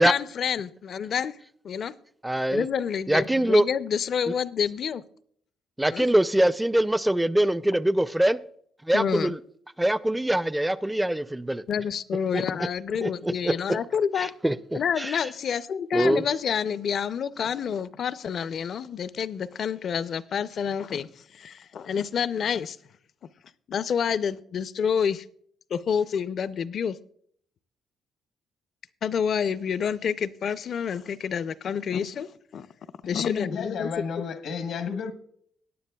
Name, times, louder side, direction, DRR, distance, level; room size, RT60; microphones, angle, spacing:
voice 1, 0.0-1.4 1.6-1.9 2.5-5.0 5.9-6.1 8.9-9.3 11.7-14.3 14.7-22.8 23.7-25.2 25.7-27.0 29.0-32.7 33.1-33.9, left 7 dB, 60° left, 0.5 m, -28 dB
voice 2, 2.2-2.7 3.1-3.6 4.3-4.4 5.8-8.4 8.9-9.4 9.8-11.6 12.3-12.4 13.0-13.8 14.2-15.1 15.9-16.2, right 1 dB, 10° right, 0.4 m, -23 dB
voice 3, 33.1-35.1, left 6 dB, 80° left, 1.0 m, -31 dB
18.0 x 9.6 x 2.3 m
cardioid pair, 90°, 0 cm